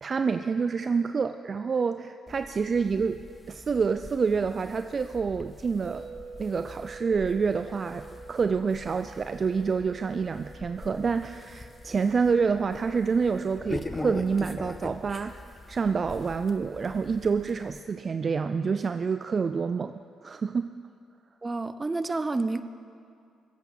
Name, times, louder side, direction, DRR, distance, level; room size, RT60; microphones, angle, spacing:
voice 1, 0.0-6.1 6.4-15.4 15.7-19.9 20.2-20.8, right 5 dB, 45° right, 10 dB, 0.4 m, -27 dB
sound 1, 2.3-17.8, left 2 dB, 25° left, 1.1 m, -43 dB
sound 2, 5.8-15.9, right 4 dB, 85° right, 2.7 m, -48 dB
voice 2, 21.4-22.6, right 3 dB, 25° right, 12 dB, 0.8 m, -29 dB
21.5 x 8.2 x 6.3 m, 2.4 s
hypercardioid pair, 50°, 0 cm